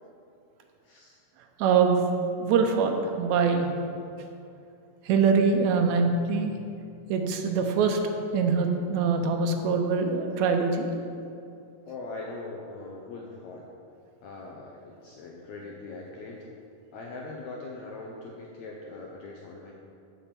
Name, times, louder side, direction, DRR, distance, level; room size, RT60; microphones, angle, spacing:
voice 1, 0.8-1.2 11.9-13.7 14.2-16.5 16.9-19.7, left 3 dB, 75° left, -2 dB, 1.8 m, -41 dB
voice 2, 1.6-2.0 2.3-3.8 5.0-6.5 7.1-8.0 8.3-10.9, right 5 dB, 80° right, 4 dB, 1.7 m, -24 dB
7.0 x 5.6 x 6.7 m, 2.6 s
omnidirectional pair, 3.8 m